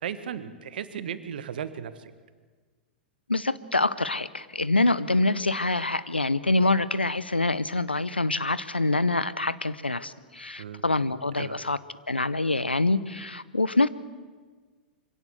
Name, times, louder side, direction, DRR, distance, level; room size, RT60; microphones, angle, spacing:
voice 1, 0.0-2.1 10.6-10.8 11.4-11.6, right 8 dB, 65° right, 13 dB, 1.4 m, -35 dB
voice 2, 3.3-11.8 12.1-13.9, left 2 dB, 90° left, 17 dB, 0.7 m, -25 dB
24.0 x 17.0 x 8.0 m, 1.5 s
figure-of-eight pair, 100°, 5 cm